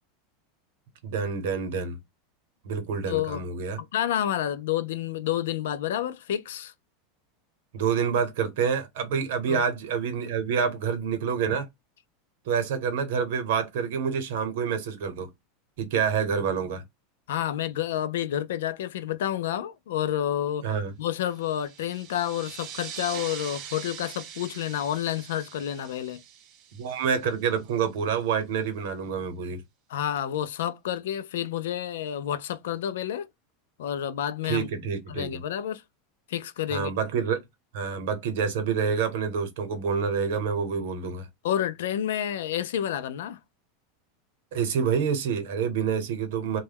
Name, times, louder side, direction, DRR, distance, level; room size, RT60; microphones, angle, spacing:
voice 1, 1.0-2.0 2.6-3.8 7.7-11.7 12.4-15.3 15.8-16.8 20.6-20.9 26.7-29.6 34.5-35.4 36.7-37.4 37.7-41.3 44.5-46.6, right 6 dB, 65° right, 0.8 m, -27 dB
voice 2, 3.1-3.4 3.8-6.7 9.5-9.6 17.3-20.6 21.0-26.2 29.9-33.3 33.8-34.7 35.1-35.8 36.3-36.9 41.4-43.4, left 11 dB, 85° left, 0.3 m, -29 dB
sound 1, 21.3-27.6, right 9 dB, 35° right, 0.4 m, -42 dB
2.2 x 2.0 x 3.3 m
supercardioid pair, 175°, 0 cm